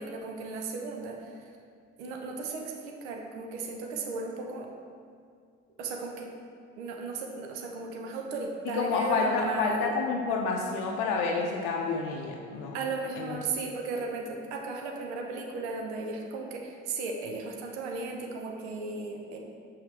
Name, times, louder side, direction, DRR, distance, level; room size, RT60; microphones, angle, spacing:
voice 1, 0.0-1.5 2.0-4.7 5.8-6.3 6.8-9.9 12.7-19.4, right 3 dB, 70° right, 1 dB, 0.8 m, -36 dB
voice 2, 8.7-12.8 13.2-13.4, left 4 dB, 60° left, 0 dB, 0.6 m, -29 dB
6.5 x 5.6 x 3.3 m, 2.2 s
figure-of-eight pair, 45°, 36 cm